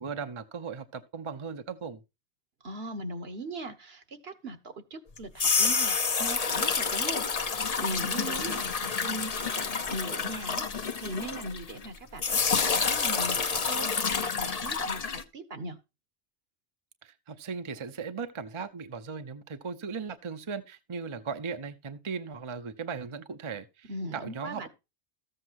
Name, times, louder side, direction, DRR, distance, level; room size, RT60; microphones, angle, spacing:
voice 1, 0.0-2.0 17.0-24.7, right 5 dB, 30° right, 0.7 m, -37 dB
voice 2, 2.6-15.8 23.9-24.7, right 1 dB, 65° right, 1.5 m, -39 dB
sound 1, 5.2-11.9 12.2-15.2, left 5 dB, 40° left, 0.8 m, -28 dB
13.5 x 7.8 x 2.9 m
omnidirectional pair, 1.1 m